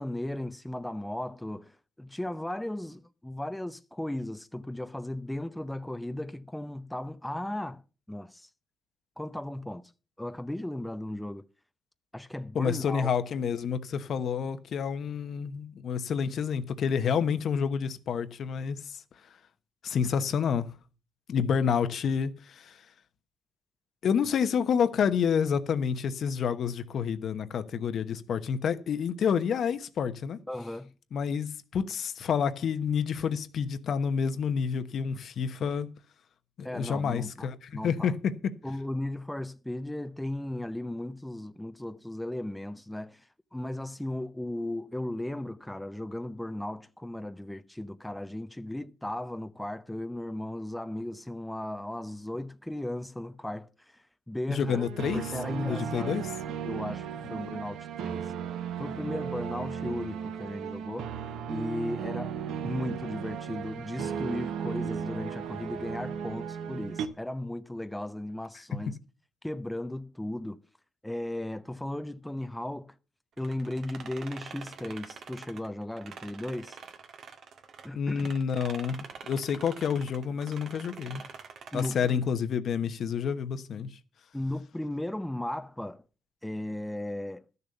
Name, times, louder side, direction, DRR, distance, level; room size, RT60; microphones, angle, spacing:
voice 1, 0.0-7.8 8.1-8.5 9.2-9.9 10.2-11.4 12.1-13.1 30.5-30.9 36.6-37.5 37.7-38.1 38.6-54.8 55.1-56.2 56.6-58.3 58.8-61.2 61.5-69.0 69.4-70.6 71.0-72.9 73.4-76.8 77.8-78.3 81.7-82.2 84.3-86.0 86.4-87.4, left 1 dB, 5° left, 0.6 m, -36 dB
voice 2, 12.5-19.0 19.8-20.7 21.3-22.8 24.0-30.4 31.1-35.9 36.6-38.5 54.5-55.2 55.6-56.3 68.7-68.8 77.9-81.2 81.7-83.9, left 7 dB, 60° left, 1.1 m, -29 dB
sound 1, 54.7-67.1, right 7 dB, 85° right, 1.1 m, -36 dB
sound 2, 73.4-77.9 78.1-82.2, right 6 dB, 60° right, 1.8 m, -46 dB
12.5 x 6.8 x 6.7 m
cardioid pair, 90°, 0 cm